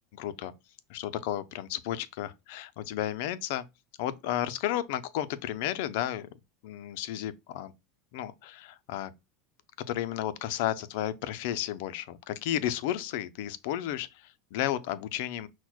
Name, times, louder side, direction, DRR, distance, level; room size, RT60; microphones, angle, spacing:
voice 1, 0.2-0.5 0.9-3.6 4.0-6.3 6.6-7.7 8.1-9.1 9.9-15.5, left 12 dB, 70° left, 0.4 m, -33 dB
5.9 x 2.1 x 2.3 m
supercardioid pair, 130°, 0 cm